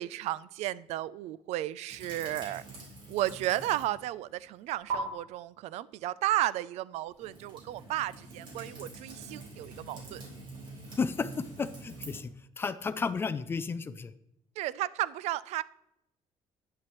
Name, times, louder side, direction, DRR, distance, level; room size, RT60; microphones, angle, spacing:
voice 1, 0.0-2.6 3.1-10.2 14.6-15.6, right 14 dB, 75° right, 19 dB, 0.4 m, -33 dB
sound 1, 1.9-4.0 4.3-4.9 7.1-12.2, right 4 dB, 45° right, 3.5 m, -44 dB
voice 2, 11.0-12.3 12.6-14.1, left 5 dB, 20° left, 12 dB, 0.4 m, -33 dB
10.5 x 9.7 x 3.0 m, 0.81 s
cardioid pair, 170°, 11 cm